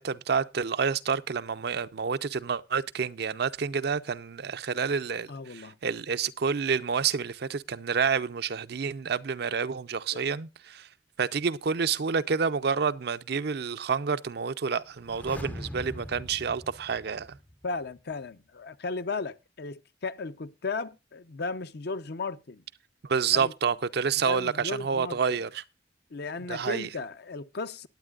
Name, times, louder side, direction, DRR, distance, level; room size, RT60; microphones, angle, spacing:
voice 1, 0.0-10.9 11.2-17.4 23.1-25.6 26.5-26.9, right 6 dB, 60° right, 0.5 m, -29 dB
voice 2, 5.3-5.8 10.1-10.2 17.6-22.6 23.3-23.5 24.2-25.4 26.1-27.9, left 3 dB, 60° left, 0.7 m, -35 dB
sound 1, 14.9-17.8 18.1-18.2, equal, 10° left, 0.5 m, -42 dB
19.5 x 8.9 x 2.4 m
head